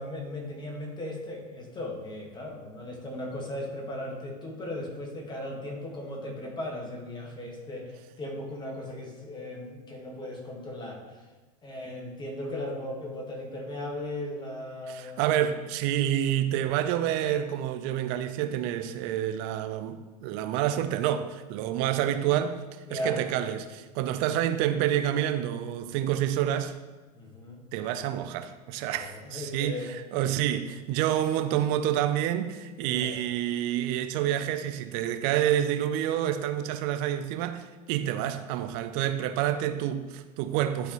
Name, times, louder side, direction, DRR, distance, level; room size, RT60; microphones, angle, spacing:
voice 1, 0.0-11.3 11.6-15.3 22.9-23.2 27.1-27.6 28.9-29.9 32.8-33.1, left 1 dB, 20° left, 1.6 m, -37 dB
voice 2, 14.9-22.6 22.9-26.7 27.7-40.9, right 11 dB, 50° right, 0.6 m, -28 dB
12.0 x 4.0 x 3.1 m
hypercardioid pair, 100°, 21 cm